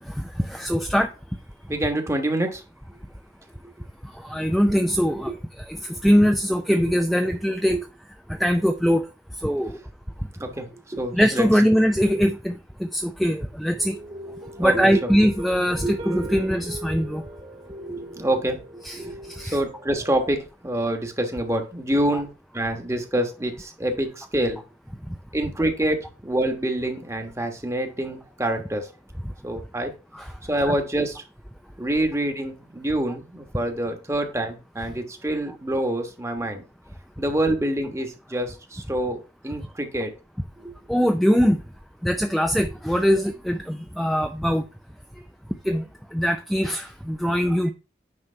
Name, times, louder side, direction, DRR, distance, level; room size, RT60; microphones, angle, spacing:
voice 1, 0.4-1.1 4.2-5.3 5.7-5.8 6.0-7.8 8.4-9.0 9.4-9.8 11.1-14.0 14.6-17.2 18.8-19.0 19.4-19.6 22.1-22.2 30.1-30.3 30.7-30.8 40.9-41.6 42.0-44.6 45.7-45.8 46.1-47.7, equal, ahead, 6 dB, 0.4 m, -22 dB
voice 2, 1.7-2.6 7.7-7.8 10.4-11.4 14.6-15.1 15.8-16.4 17.8-19.2 19.4-22.3 22.5-24.6 25.3-26.0 26.2-28.9 29.4-29.9 30.4-31.2 31.8-36.6 37.2-40.1 40.6-40.7, right 1 dB, 15° right, 4 dB, 1.2 m, -26 dB
sound 1, 13.8-20.4, equal, 35° right, 1.6 m, -41 dB
9.7 x 3.3 x 5.5 m, 0.32 s
head